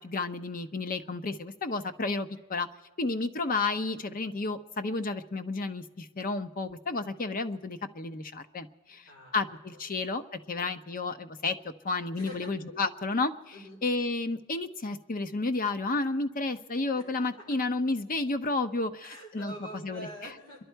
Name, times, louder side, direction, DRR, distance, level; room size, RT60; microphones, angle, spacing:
voice 1, 0.0-2.7 3.0-11.6 11.8-13.3 13.8-19.5 19.8-20.1, left 3 dB, 40° left, 10 dB, 0.7 m, -31 dB
voice 2, 8.9-10.0 10.5-10.7 12.1-12.6 13.5-13.8 16.9-17.0 17.3-17.4 19.0-20.6, right 1 dB, 80° left, -2 dB, 4.7 m, -46 dB
27.5 x 11.5 x 4.5 m, 1.1 s
head